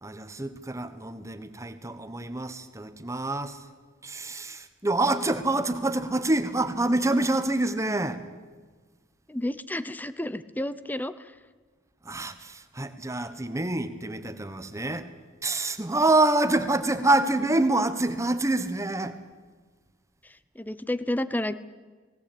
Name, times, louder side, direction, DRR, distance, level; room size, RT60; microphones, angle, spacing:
voice 1, 0.0-3.7 4.0-8.2 12.0-15.1 15.4-19.2, right 2 dB, 15° right, 10 dB, 1.3 m, -26 dB
voice 2, 9.3-11.1 20.6-21.6, left 1 dB, 10° left, 14 dB, 0.7 m, -30 dB
19.5 x 18.0 x 8.8 m, 1.4 s
head